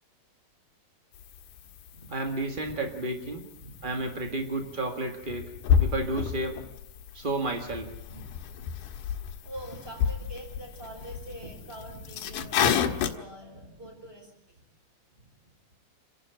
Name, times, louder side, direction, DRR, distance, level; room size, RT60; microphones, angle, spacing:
sound 1, 1.1-13.2, left 8 dB, 85° left, 3.2 m, -32 dB
voice 1, 2.1-3.4 3.8-5.4 5.8-6.6 7.1-7.9, right 2 dB, 35° right, 4 dB, 0.7 m, -31 dB
voice 2, 3.6-4.4 8.1-8.7 9.4-14.6 15.2-15.3, right 1 dB, 15° right, 1 dB, 5.7 m, -44 dB
29.0 x 11.5 x 9.0 m, 0.78 s
omnidirectional pair, 4.2 m